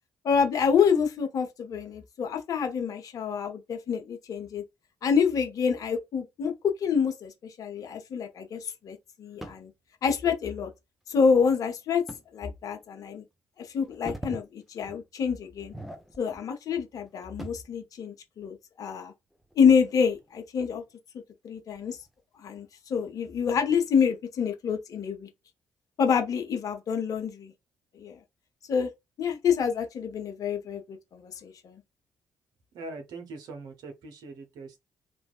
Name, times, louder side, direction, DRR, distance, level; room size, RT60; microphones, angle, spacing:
voice 1, 0.2-4.6 5.0-9.7 10.0-10.7 11.1-12.0 12.3-13.2 13.6-15.7 16.2-19.1 19.6-20.8 21.4-22.0 22.4-25.3 26.0-27.5 27.9-28.2 28.7-28.9 29.2-31.8, left 6 dB, 50° left, 0.8 m, -27 dB
sound 1, 9.4-9.7 12.1-12.3 12.8-12.9 13.8-14.5 14.8-15.1 15.6-16.5 16.8-17.7 19.3-20.4 20.9-21.0 21.7-22.1, right 1 dB, ahead, 0.8 m, -42 dB
voice 2, 32.7-34.8, right 3 dB, 60° right, 0.9 m, -42 dB
3.1 x 2.5 x 2.3 m
figure-of-eight pair, 45°, 8 cm